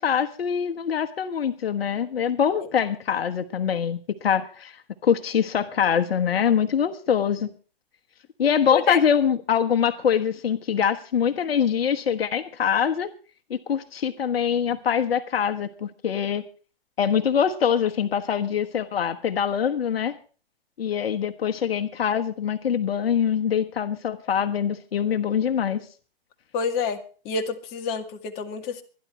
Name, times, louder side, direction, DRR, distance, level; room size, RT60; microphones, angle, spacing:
voice 1, 0.0-7.5 8.4-13.1 13.5-16.4 17.0-20.2 20.8-25.8, left 8 dB, 75° left, 8 dB, 1.3 m, -24 dB
voice 2, 8.7-9.0 26.5-28.8, left 5 dB, 30° left, 6 dB, 2.1 m, -28 dB
24.5 x 10.5 x 3.2 m, 0.37 s
hypercardioid pair, 130°, 30 cm